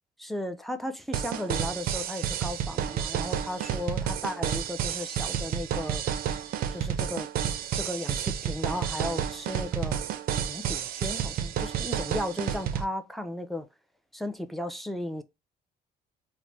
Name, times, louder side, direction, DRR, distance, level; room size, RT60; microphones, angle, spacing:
voice 1, 0.2-6.0 6.7-7.3 7.7-10.0 10.5-13.7 14.1-15.2, left 1 dB, ahead, 0.4 m, -35 dB
sound 1, 1.1-12.8, right 9 dB, 60° right, 0.4 m, -30 dB
3.1 x 2.0 x 3.0 m
cardioid pair, 110°, 17 cm